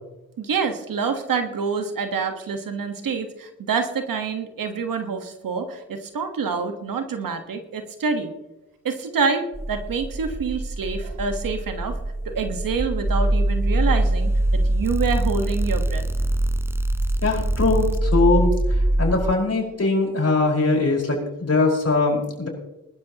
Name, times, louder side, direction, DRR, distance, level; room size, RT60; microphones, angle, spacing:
voice 1, 0.4-8.3 8.8-12.0 12.2-16.0, right 5 dB, 75° right, 7 dB, 1.5 m, -27 dB
sound 1, 9.5-19.3, right 1 dB, 5° right, 0.6 m, -23 dB
voice 2, 17.2-22.5, left 3 dB, 45° left, -1 dB, 5.0 m, -21 dB
20.5 x 12.5 x 3.0 m, 0.99 s
supercardioid pair, 45°, 34 cm